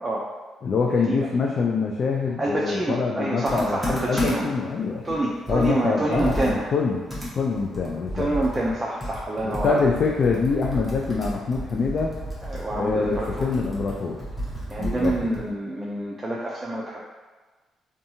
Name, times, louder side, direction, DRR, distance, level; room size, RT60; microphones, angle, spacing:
voice 1, 0.6-5.1 5.5-7.1 7.3-8.3 9.4-12.2 12.7-14.2 14.8-15.1, left 4 dB, 50° left, -1 dB, 0.3 m, -25 dB
voice 2, 2.4-4.4 5.0-6.6 8.1-9.8 12.4-13.5 14.7-17.0, right 1 dB, 20° right, -5 dB, 0.4 m, -27 dB
Computer keyboard, 3.5-4.6 5.1-5.2 5.5-8.8 9.0-15.5, equal, ahead, 0.9 m, -32 dB
2.7 x 2.3 x 2.7 m, 1.3 s
cardioid pair, 90°, 0 cm